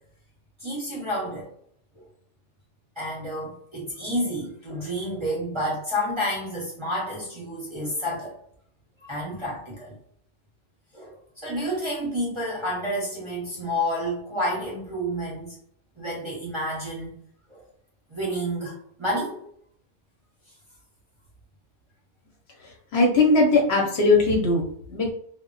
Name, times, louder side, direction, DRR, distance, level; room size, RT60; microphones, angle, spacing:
voice 1, 0.6-1.5 3.0-8.4 9.0-10.0 10.9-15.6 16.0-17.1 17.5-17.6 18.1-19.4, equal, 30° right, -5 dB, 0.6 m, -30 dB
voice 2, 22.9-25.1, left 3 dB, 60° left, 0 dB, 0.8 m, -20 dB
2.1 x 2.0 x 3.8 m, 0.64 s
omnidirectional pair, 1.3 m